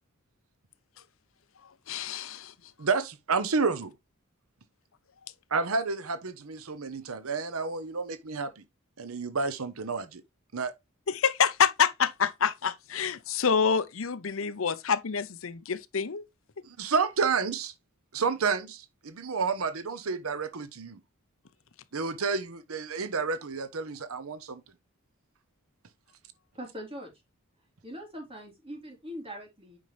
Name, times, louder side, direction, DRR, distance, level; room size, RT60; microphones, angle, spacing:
voice 1, 1.9-2.5 11.1-16.3, left 6 dB, 65° left, 0.7 m, -27 dB
voice 2, 2.8-3.9 5.5-8.6 9.0-10.2 10.5-10.7 16.6-17.7 18.1-21.0 21.9-24.6, right 4 dB, 80° right, 0.9 m, -30 dB
voice 3, 26.5-27.1 27.8-29.8, equal, 25° right, 3.6 m, -41 dB
8.9 x 5.5 x 3.2 m
head